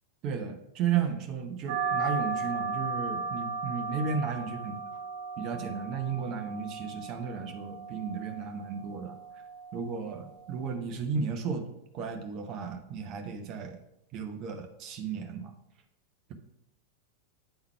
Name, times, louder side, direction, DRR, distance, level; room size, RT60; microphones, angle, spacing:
voice 1, 0.2-4.8 5.4-9.2 9.7-11.7 11.9-13.8 14.1-15.5, right 6 dB, 35° right, 4 dB, 0.9 m, -34 dB
sound 1, 1.7-10.7, right 4 dB, 55° right, 1.1 m, -36 dB
8.9 x 3.9 x 4.5 m, 0.82 s
figure-of-eight pair, 90°, 0 cm